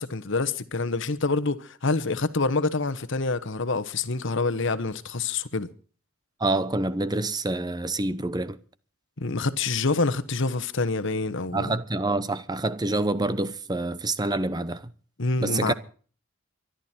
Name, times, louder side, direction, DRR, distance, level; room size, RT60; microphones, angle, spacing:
voice 1, 0.0-5.7 9.2-11.7 15.2-15.7, left 3 dB, 60° left, 1.2 m, -26 dB
voice 2, 6.4-8.6 11.5-14.9 15.4-15.7, right 2 dB, 20° right, 0.8 m, -27 dB
24.5 x 12.0 x 4.4 m
head